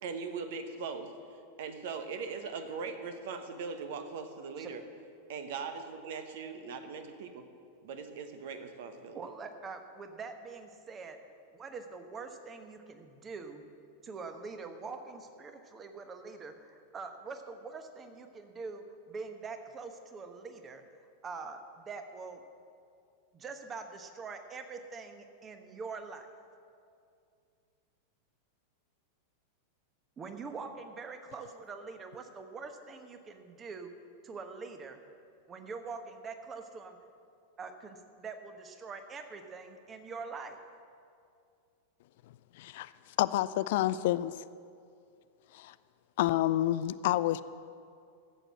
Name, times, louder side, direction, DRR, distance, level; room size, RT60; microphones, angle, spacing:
voice 1, 0.0-1.1 1.6-4.8 5.3-7.5 7.8-9.2, right 5 dB, 55° right, 7 dB, 1.2 m, -40 dB
voice 2, 9.1-11.2 11.5-13.6 14.0-20.8 21.2-22.4 23.3-26.3 30.2-33.9 34.2-35.0 35.5-37.0 37.6-40.6, right 4 dB, 25° right, 7 dB, 1.2 m, -44 dB
voice 3, 42.5-42.9 43.2-44.4 45.5-45.7 46.2-47.4, left 14 dB, 50° left, 16 dB, 0.3 m, -29 dB
13.5 x 7.8 x 7.5 m, 2.4 s
figure-of-eight pair, 90°, 0 cm